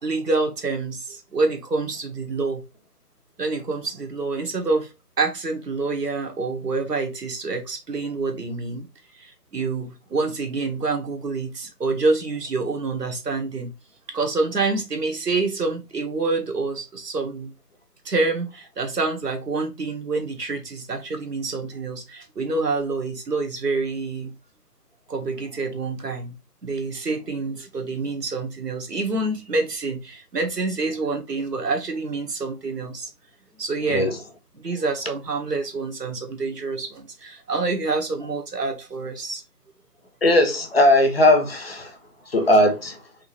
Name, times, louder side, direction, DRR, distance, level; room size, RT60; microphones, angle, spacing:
voice 1, 0.0-2.6 3.4-4.9 5.2-8.9 9.2-13.7 14.1-17.5 18.0-24.3 25.1-26.4 26.6-33.1 33.6-34.1 34.5-39.4, right 3 dB, 80° right, 1.5 m, -27 dB
voice 2, 40.2-41.9 42.3-43.0, left 1 dB, 40° left, 0.9 m, -18 dB
3.9 x 3.5 x 3.2 m
figure-of-eight pair, 165°, 48 cm